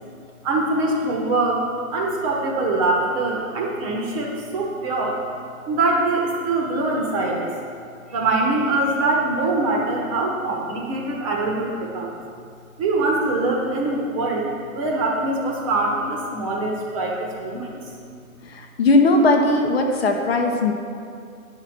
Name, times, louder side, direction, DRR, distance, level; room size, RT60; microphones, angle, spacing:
voice 1, 0.4-1.6 1.9-5.2 5.7-7.5 8.1-12.1 12.8-17.9, right 2 dB, 25° right, -1 dB, 1.1 m, -23 dB
voice 2, 18.4-20.7, left 2 dB, 45° left, 3 dB, 0.9 m, -18 dB
9.5 x 5.7 x 5.9 m, 2.3 s
hypercardioid pair, 155°, 43 cm